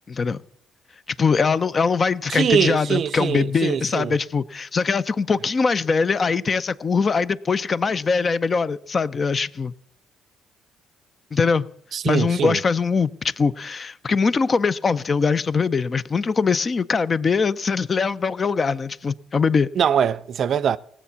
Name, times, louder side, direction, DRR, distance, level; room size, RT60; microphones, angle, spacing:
voice 1, 0.1-0.4 1.2-9.7 11.3-11.7 12.1-19.7, left 5 dB, 40° left, 0.5 m, -22 dB
voice 2, 2.3-4.2 11.9-12.6 19.8-20.8, right 8 dB, 55° right, 0.5 m, -22 dB
17.5 x 7.3 x 6.9 m
supercardioid pair, 65°, 0 cm